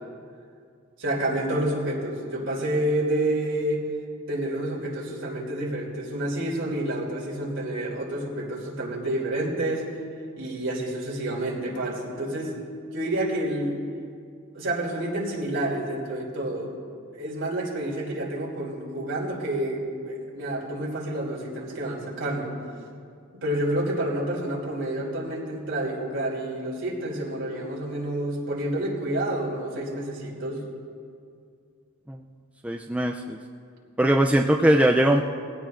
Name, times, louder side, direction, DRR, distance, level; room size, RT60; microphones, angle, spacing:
voice 1, 1.0-3.8 4.3-9.8 10.4-12.5 12.9-13.8 14.5-16.7 17.1-22.5 23.3-30.6, right 1 dB, 60° right, -3 dB, 2.8 m, -29 dB
voice 2, 32.6-33.4 34.0-35.2, right 1 dB, 5° right, 1 dB, 0.4 m, -20 dB
20.5 x 16.0 x 2.5 m, 2.3 s
head